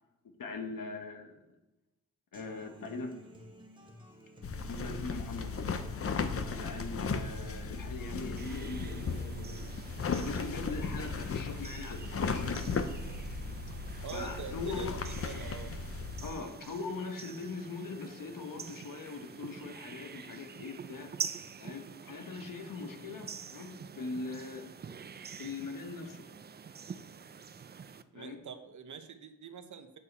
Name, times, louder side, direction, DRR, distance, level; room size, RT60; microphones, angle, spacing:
voice 1, 0.4-1.4 2.3-3.1 4.7-5.5 6.5-9.7 10.2-12.9 13.4-13.6 14.1-15.0 16.2-21.1 21.6-24.6 25.4-26.2 28.1-28.4, left 4 dB, 80° left, 4 dB, 1.3 m, -41 dB
Human voice / Acoustic guitar, 2.3-10.3, equal, 15° right, 1.4 m, -52 dB
sound 1, 4.4-16.3, left 4 dB, 45° left, 0.6 m, -36 dB
sound 2, 8.4-28.0, right 6 dB, 30° right, 0.4 m, -46 dB
voice 2, 14.0-15.7 28.1-30.0, right 7 dB, 65° right, 7 dB, 0.9 m, -45 dB
8.6 x 7.3 x 4.1 m, 1.0 s
wide cardioid pair, 130°, 32 cm